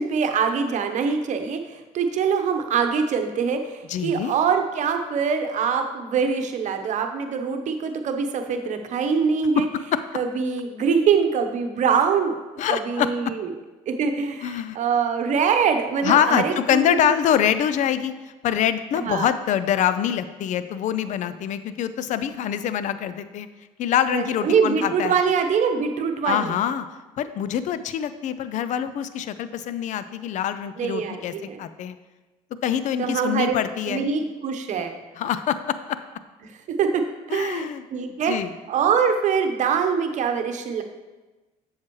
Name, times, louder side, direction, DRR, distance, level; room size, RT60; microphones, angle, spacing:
voice 1, 0.0-1.6 1.9-3.6 4.0-9.7 10.1-12.3 12.7-13.4 13.9-16.8 19.0-19.3 24.1-26.5 30.8-31.6 33.0-33.5 33.9-34.9 36.8-37.0 37.3-37.6 37.9-38.3 38.7-40.8, right 6 dB, 55° right, 6 dB, 0.9 m, -23 dB
voice 2, 3.9-4.3 9.6-9.7 9.9-10.0 12.6-13.1 14.4-14.8 16.0-18.1 18.4-23.5 23.8-25.2 26.2-26.9 27.2-32.0 32.6-34.1 35.2-36.0 37.3-37.8 38.2-38.5, left 9 dB, 55° left, 13 dB, 0.5 m, -24 dB
7.4 x 7.3 x 3.1 m, 1.2 s
supercardioid pair, 85°, 15 cm